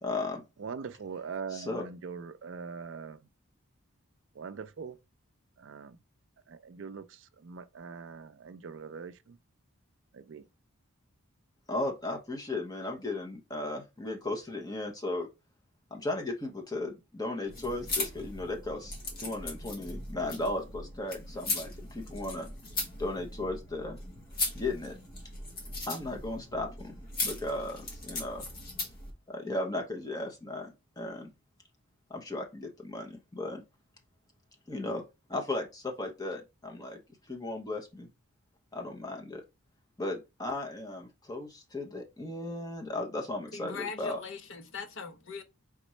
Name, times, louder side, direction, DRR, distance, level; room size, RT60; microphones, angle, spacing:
voice 1, 0.0-0.4 1.5-1.8 11.7-15.3 15.9-22.5 23.0-24.0 24.5-25.0 25.9-26.9 27.2-28.5 29.3-31.3 32.1-33.6 34.7-37.0 37.3-38.1 38.7-39.4 40.0-44.2, left 2 dB, 15° left, 0.8 m, -36 dB
voice 2, 0.6-3.2 4.4-5.0 5.6-6.0 6.5-9.4 10.1-10.4, right 5 dB, 55° right, 0.4 m, -42 dB
sound 1, 17.5-29.1, left 2 dB, 40° left, 1.3 m, -38 dB
voice 3, 43.5-45.4, left 5 dB, 60° left, 0.6 m, -40 dB
4.2 x 3.6 x 3.1 m
head